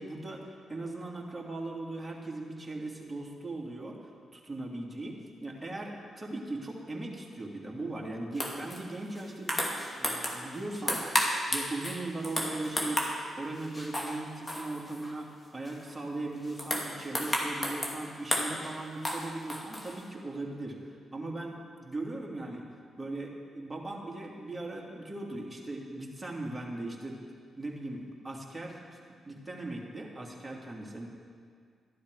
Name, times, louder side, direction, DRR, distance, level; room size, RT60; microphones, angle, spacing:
voice 1, 0.0-4.0 4.3-9.6 10.0-11.0 11.5-13.1 13.4-22.7 23.0-27.2 27.6-28.8 29.3-31.1, right 2 dB, 20° right, -2 dB, 2.8 m, -39 dB
sound 1, 8.4-8.8 9.1-10.5 10.7-13.2 13.6-14.2 14.5-15.1 15.7-15.9 16.3-18.0 18.3-18.7 19.0-20.0, equal, 25° left, 2.4 m, -32 dB
12.5 x 11.5 x 4.9 m, 2.1 s
hypercardioid pair, 40°, 0 cm